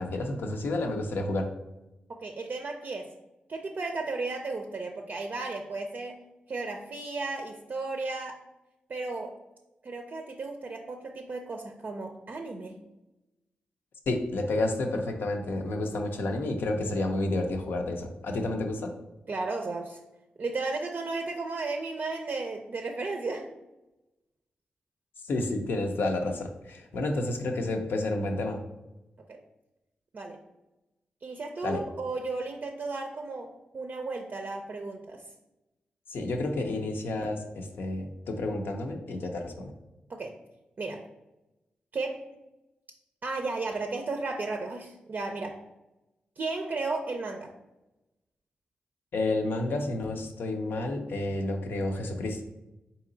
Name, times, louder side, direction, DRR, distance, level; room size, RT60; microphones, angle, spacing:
voice 1, 0.0-1.5 14.1-18.9 25.3-28.6 31.6-31.8 36.1-39.7 49.1-52.4, left 2 dB, 75° left, 4 dB, 0.5 m, -30 dB
voice 2, 2.1-3.1 3.5-6.2 6.5-8.4 8.9-9.3 9.8-12.8 19.3-20.0 20.4-23.5 29.3-29.4 30.1-30.4 31.2-33.5 33.7-35.2 40.1-40.3 40.8-41.0 41.9-42.3 43.2-45.6 46.4-47.5, right 3 dB, 55° right, 3 dB, 0.4 m, -34 dB
3.8 x 2.8 x 3.8 m, 0.96 s
supercardioid pair, 40°, 4 cm